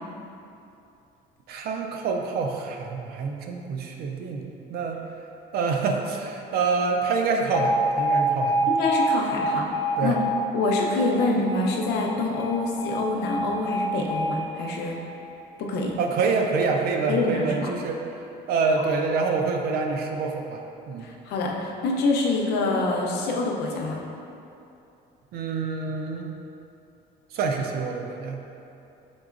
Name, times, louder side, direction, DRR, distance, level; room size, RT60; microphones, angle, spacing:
voice 1, 1.5-5.0 5.5-8.7 10.0-10.2 16.0-18.0 18.5-20.6 20.9-21.1 25.3-26.3 27.3-28.6, right 4 dB, 65° right, 3 dB, 0.5 m, -26 dB
Alarm, 7.5-15.6, right 1 dB, 15° left, 0.4 m, -27 dB
voice 2, 8.7-9.7 10.0-10.2 10.5-15.0 15.6-15.9 17.1-17.5 21.0-24.0, left 3 dB, 80° left, -1 dB, 0.6 m, -26 dB
5.3 x 3.8 x 2.4 m, 2.8 s
cardioid pair, 110°, 17 cm